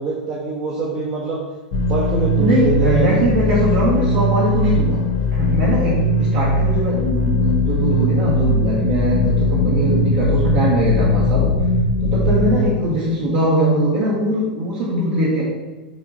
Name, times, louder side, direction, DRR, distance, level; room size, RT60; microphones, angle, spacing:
voice 1, 0.0-1.4 1.8-3.3 6.4-6.6, right 3 dB, 30° right, -5 dB, 1.1 m, -24 dB
sound 1, 1.7-12.6, left 1 dB, 45° left, 0.8 m, -19 dB
voice 2, 2.4-5.0 5.3-11.5 12.0-15.4, right 1 dB, 50° right, -7 dB, 1.4 m, -21 dB
6.5 x 3.7 x 4.0 m, 1.2 s
figure-of-eight pair, 95°, 5 cm